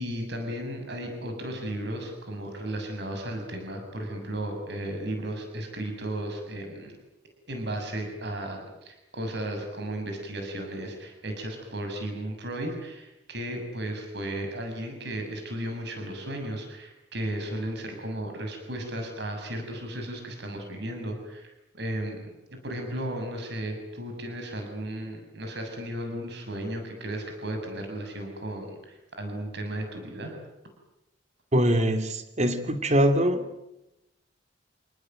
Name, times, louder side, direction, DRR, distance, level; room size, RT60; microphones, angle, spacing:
voice 1, 0.0-7.0 7.5-30.3, right 1 dB, 65° right, 4 dB, 6.9 m, -35 dB
voice 2, 31.5-33.5, equal, 40° right, 8 dB, 2.9 m, -23 dB
29.0 x 19.5 x 9.3 m, 0.90 s
head